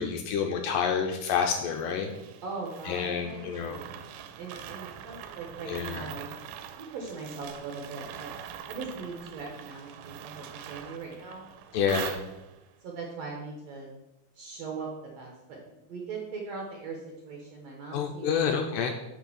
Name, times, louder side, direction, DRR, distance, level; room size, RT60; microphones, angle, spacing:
voice 1, 0.0-2.1 2.9-3.8 5.7-6.1 11.7-12.2 17.9-18.9, left 7 dB, 80° left, 4 dB, 2.1 m, -28 dB
sound 1, 1.7-12.7, right 9 dB, 85° right, 2.5 m, -43 dB
voice 2, 2.4-4.1 4.4-6.4 6.7-8.3 8.7-11.5 12.8-13.9 14.3-18.7, right 4 dB, 70° right, 0 dB, 1.7 m, -40 dB
6.3 x 5.6 x 6.9 m, 0.99 s
omnidirectional pair, 4.3 m